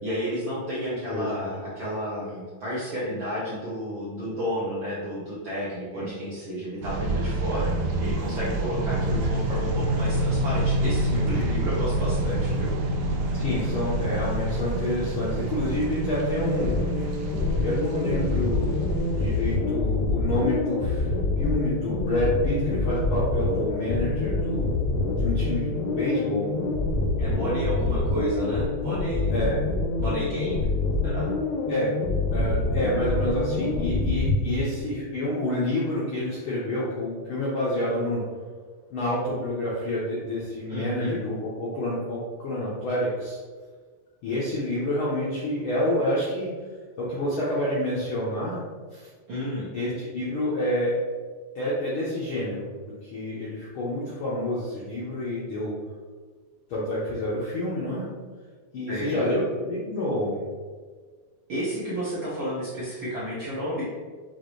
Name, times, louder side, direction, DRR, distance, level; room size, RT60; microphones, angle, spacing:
voice 1, 0.0-12.7 27.2-29.3 30.0-30.6 31.0-31.3 34.4-34.8 40.7-41.1 49.3-49.7 58.9-59.2 61.5-63.8, equal, 70° right, -8 dB, 1.2 m, -31 dB
voice 2, 1.1-1.5 5.9-6.1 11.1-11.2 13.3-16.7 17.6-18.8 19.1-21.1 21.4-24.7 25.2-26.5 29.3-29.6 31.7-31.9 32.3-38.2 38.9-43.4 44.2-46.5 47.0-48.6 48.9-49.1 49.7-51.0 51.5-52.7 53.0-55.7 56.7-58.1 58.7-60.4, left 1 dB, 75° left, -7 dB, 1.2 m, -28 dB
sound 1, 6.8-19.6, right 3 dB, 90° right, 2.1 m, -29 dB
sound 2, 8.7-27.9, left 1 dB, 45° right, 1.0 m, -33 dB
sound 3, 16.0-34.5, left 3 dB, 90° left, 2.0 m, -26 dB
6.6 x 2.5 x 3.0 m, 1.5 s
omnidirectional pair, 3.3 m